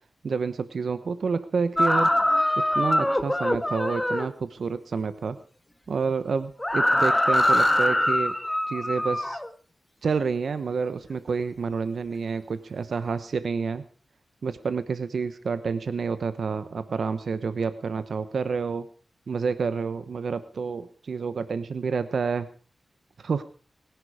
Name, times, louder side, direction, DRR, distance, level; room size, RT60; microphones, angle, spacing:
voice 1, 0.2-2.1 2.7-5.4 5.9-8.3 8.7-9.4 10.0-13.8 14.4-18.9 19.3-22.5 23.2-23.4, right 5 dB, 75° right, 12 dB, 1.0 m, -29 dB
sound 1, 1.8-4.3 6.6-9.5, left 1 dB, 15° left, 1.6 m, -23 dB
22.5 x 11.0 x 4.9 m, 0.40 s
wide cardioid pair, 80°, 0 cm